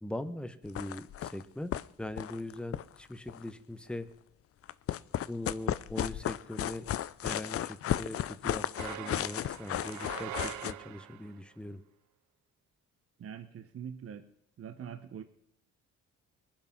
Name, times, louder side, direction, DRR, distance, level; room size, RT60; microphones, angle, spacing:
voice 1, 0.0-1.7 2.0-4.1 5.3-6.9 7.2-11.8, left 1 dB, 5° left, 11 dB, 0.9 m, -41 dB
sound 1, 0.6-1.4 1.7-1.8 2.1-3.5 4.6-10.7, left 11 dB, 50° left, 0.5 m, -34 dB
sound 2, 8.7-11.4, right 15 dB, 70° right, 0.6 m, -43 dB
voice 2, 13.2-14.2 14.6-15.2, right 8 dB, 50° right, 9 dB, 1.0 m, -43 dB
21.0 x 7.5 x 5.8 m, 0.74 s
cardioid pair, 90°, 30 cm